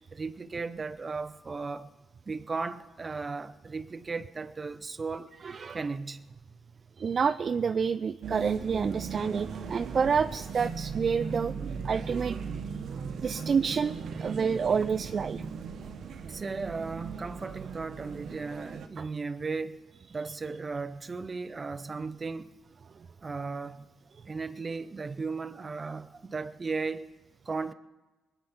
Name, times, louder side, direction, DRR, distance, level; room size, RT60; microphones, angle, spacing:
voice 1, 0.1-1.9 2.3-5.3 5.7-6.3 16.2-19.8 20.1-22.5 23.2-23.9 24.3-27.1 27.5-27.7, right 4 dB, 30° right, 0.9 m, -36 dB
voice 2, 5.4-5.8 7.0-12.4 13.2-15.4 19.0-19.1, right 6 dB, 45° right, 0.4 m, -28 dB
sound 1, 8.2-18.9, right 6 dB, 65° right, 1.2 m, -38 dB
21.0 x 9.5 x 5.9 m
cardioid pair, 90°, 0 cm